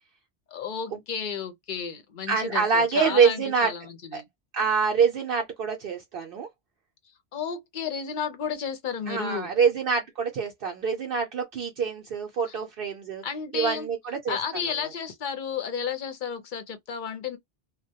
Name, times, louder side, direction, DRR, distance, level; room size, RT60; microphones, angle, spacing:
voice 1, 0.5-4.2 7.3-9.5 12.5-12.6 13.2-13.9 14.3-17.4, left 7 dB, 55° left, 0.7 m, -32 dB
voice 2, 2.3-3.7 4.1-4.2 4.5-6.5 9.1-13.2 13.5-14.6, right 5 dB, 65° right, 0.7 m, -25 dB
2.2 x 2.1 x 2.7 m
omnidirectional pair, 1.1 m